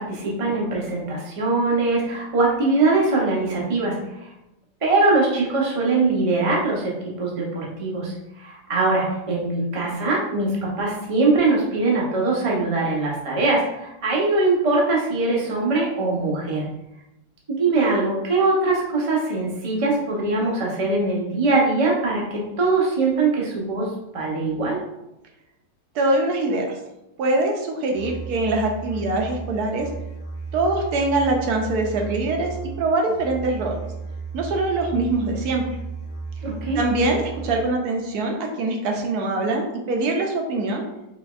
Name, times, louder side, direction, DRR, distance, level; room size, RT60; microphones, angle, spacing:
voice 1, 0.0-4.3 4.8-16.6 17.5-24.8 36.4-36.8, right 3 dB, 40° right, -4 dB, 0.5 m, -22 dB
voice 2, 25.9-26.8 27.2-29.9 30.5-33.8 34.3-35.6 36.7-40.8, right 2 dB, 70° right, 2 dB, 1.0 m, -23 dB
Musical instrument, 27.9-37.9, right 4 dB, 65° left, 0.7 m, -34 dB
4.1 x 2.9 x 2.4 m, 0.90 s
omnidirectional pair, 1.9 m